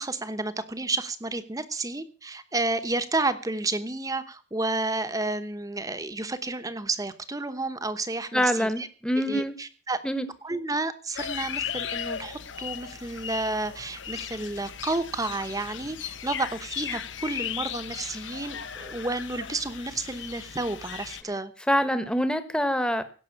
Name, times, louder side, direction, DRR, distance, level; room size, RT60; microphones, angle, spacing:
voice 1, 0.0-8.9 9.2-10.0 10.4-21.5, right 2 dB, 20° right, 11 dB, 1.0 m, -31 dB
voice 2, 8.3-9.6 10.0-10.3 21.7-23.0, equal, 5° left, 10 dB, 1.2 m, -25 dB
sound 1, 11.2-21.2, left 8 dB, 70° left, 0.9 m, -37 dB
16.5 x 6.3 x 8.5 m, 0.40 s
head